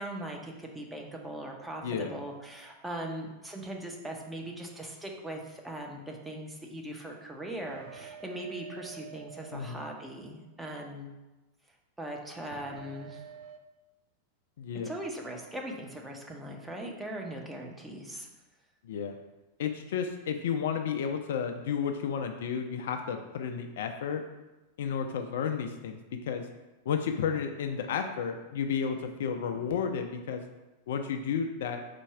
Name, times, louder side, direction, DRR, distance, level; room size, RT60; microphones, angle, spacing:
voice 1, 0.0-11.1 12.0-13.2 14.8-18.3, right 1 dB, 5° right, 0 dB, 0.6 m, -40 dB
voice 2, 1.8-2.2 9.5-9.8 14.6-14.9 18.8-19.2 19.6-24.2 24.8-26.5 26.9-30.4 30.9-31.8, left 7 dB, 55° left, 5 dB, 0.3 m, -32 dB
sound 1, 7.6-10.6 12.5-13.6, right 8 dB, 55° right, 0.3 m, -48 dB
4.2 x 2.2 x 4.6 m, 1.1 s
figure-of-eight pair, 90°, 0 cm